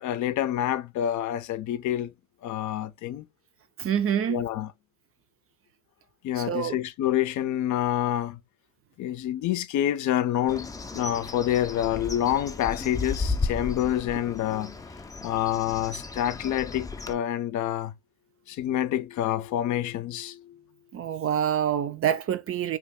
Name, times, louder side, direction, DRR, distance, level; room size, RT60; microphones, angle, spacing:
voice 1, 0.0-2.1 2.4-3.3 4.3-4.7 6.2-8.4 9.0-10.7 10.9-14.7 15.2-17.9 18.5-20.6, left 11 dB, 75° left, 0.5 m, -27 dB
voice 2, 3.8-4.4 6.4-6.8 20.9-22.8, right 9 dB, 50° right, 0.5 m, -26 dB
Bird, 10.5-17.1, left 3 dB, 10° left, 0.4 m, -34 dB
3.0 x 2.3 x 3.4 m
cardioid pair, 90°, 30 cm